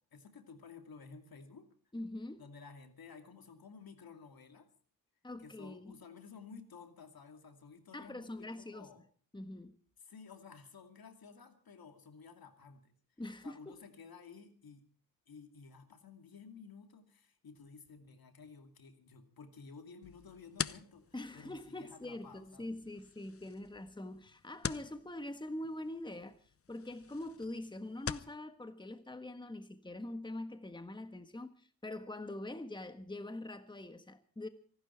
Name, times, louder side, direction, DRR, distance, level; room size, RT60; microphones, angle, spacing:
voice 1, 0.0-1.7 2.4-4.7 5.4-9.0 10.0-12.9 13.4-14.9 15.3-21.1 21.3-22.8, left 5 dB, 70° left, 2.6 m, -54 dB
voice 2, 1.9-2.4 5.2-5.9 7.9-8.9 9.3-9.7 13.2-13.7 21.1-26.4 26.7-34.5, left 1 dB, 10° left, 1.5 m, -44 dB
sound 1, 20.0-28.4, left 6 dB, 40° left, 0.7 m, -45 dB
25.0 x 12.0 x 4.5 m
cardioid pair, 65°, 37 cm